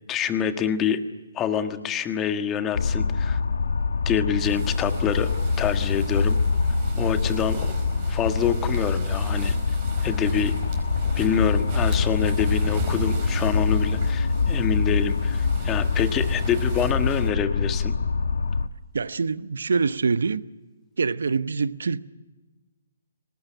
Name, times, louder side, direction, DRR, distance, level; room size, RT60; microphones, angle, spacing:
voice 1, 0.1-1.0 1.3-3.4 4.0-5.3 5.6-6.4 6.9-7.7 8.1-9.5 10.0-10.5 11.1-17.9, left 8 dB, 15° left, 1.6 m, -26 dB
sound 1, 2.7-18.7, left 4 dB, 80° left, 1.2 m, -24 dB
sound 2, 4.4-17.3, right 6 dB, 35° right, 4.8 m, -36 dB
voice 2, 18.9-20.4 21.0-22.0, right 4 dB, 80° right, 1.0 m, -25 dB
25.0 x 19.5 x 9.1 m
hypercardioid pair, 150°, 0 cm